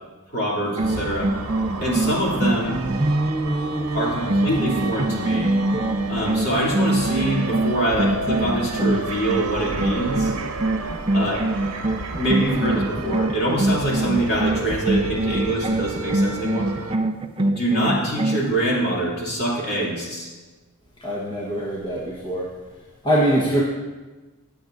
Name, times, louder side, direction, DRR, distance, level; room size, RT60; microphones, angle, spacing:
voice 1, 0.3-1.3 1.8-2.8 3.9-5.5 6.1-10.3 11.1-11.4 12.1-16.7 17.4-20.3, right 1 dB, 45° left, -5 dB, 2.8 m, -24 dB
sound 1, 0.6-9.5 9.8-18.5, right 2 dB, 25° right, 0.4 m, -24 dB
sound 2, 0.8-16.9, right 3 dB, 70° right, 0.8 m, -32 dB
voice 2, 21.0-22.5 23.0-23.6, equal, 20° left, -5 dB, 1.2 m, -23 dB
19.5 x 7.1 x 2.6 m, 1.2 s
head